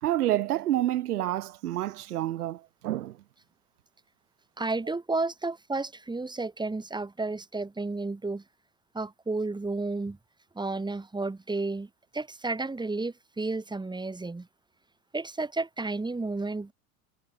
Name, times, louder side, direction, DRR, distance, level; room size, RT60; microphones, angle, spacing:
voice 1, 0.0-3.2, right 13 dB, 90° right, 0.8 m, -28 dB
voice 2, 4.6-8.4 8.9-10.2 10.5-14.5 15.1-16.7, right 3 dB, 10° right, 2.6 m, -32 dB
hypercardioid pair, 90°, 44 cm